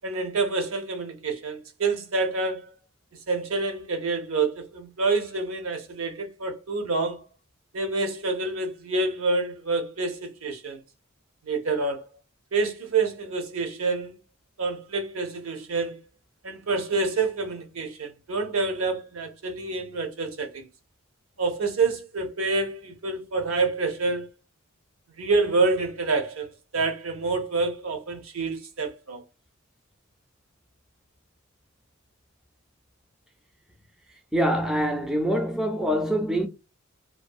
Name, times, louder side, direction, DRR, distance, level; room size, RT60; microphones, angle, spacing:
voice 1, 0.0-2.7 3.3-7.2 7.7-10.8 11.4-12.0 12.5-14.2 14.6-16.0 16.4-20.7 21.4-24.3 25.2-29.2, right 3 dB, 80° right, 0.7 m, -27 dB
voice 2, 34.3-36.5, equal, 5° right, 0.3 m, -24 dB
2.6 x 2.5 x 2.3 m
head